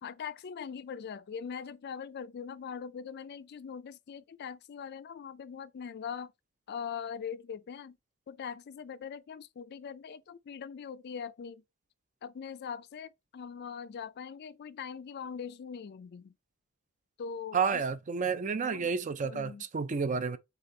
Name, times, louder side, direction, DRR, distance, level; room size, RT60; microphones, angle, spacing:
voice 1, 0.0-6.3 6.7-8.0 8.3-11.6 12.2-16.3 17.2-17.8 18.6-18.9 19.2-19.6, left 7 dB, 50° left, 0.4 m, -41 dB
voice 2, 17.5-20.4, right 5 dB, 35° right, 0.4 m, -30 dB
4.1 x 3.6 x 3.2 m
head